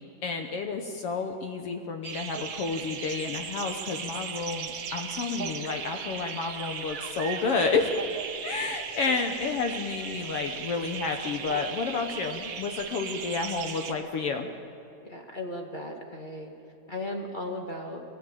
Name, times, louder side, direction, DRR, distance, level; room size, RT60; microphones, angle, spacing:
voice 1, 0.2-7.9 8.4-14.5, left 4 dB, 70° left, 5 dB, 1.4 m, -30 dB
sound 1, 2.0-13.9, right 6 dB, 60° right, 1.2 m, -37 dB
voice 2, 15.0-16.5 16.9-18.0, left 1 dB, 25° left, 1 dB, 1.1 m, -36 dB
23.0 x 17.0 x 9.0 m, 3.0 s
omnidirectional pair, 3.9 m